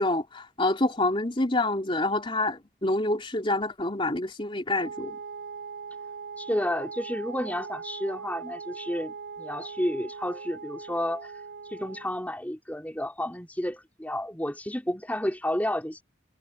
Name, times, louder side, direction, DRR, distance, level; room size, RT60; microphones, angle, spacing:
voice 1, 0.0-5.2, left 2 dB, 30° left, 3.4 m, -27 dB
Wind instrument woodwind instrument, 4.8-12.2, right 5 dB, 70° right, 3.7 m, -40 dB
voice 2, 6.4-11.3 11.7-16.0, left 1 dB, 10° left, 3.4 m, -31 dB
head